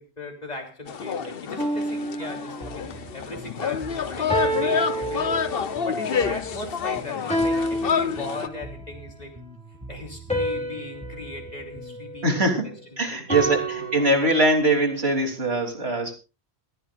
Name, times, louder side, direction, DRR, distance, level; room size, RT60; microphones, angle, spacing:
voice 1, 0.0-2.9 3.1-5.5 5.9-9.3 9.9-12.4 12.6-14.1, left 1 dB, 40° left, 2 dB, 3.5 m, -38 dB
sound 1, 0.9-8.5, left 7 dB, 60° left, 1.0 m, -28 dB
sound 2, 1.6-2.9 4.3-5.9 7.3-8.8 10.3-12.7 13.3-14.6, right 1 dB, 5° left, 3.1 m, -29 dB
Bass guitar, 2.6-12.2, right 2 dB, 20° right, 2.4 m, -44 dB
voice 2, 12.2-16.1, right 2 dB, 70° right, 3 dB, 3.6 m, -22 dB
21.0 x 15.0 x 2.5 m, 0.31 s
omnidirectional pair, 1.1 m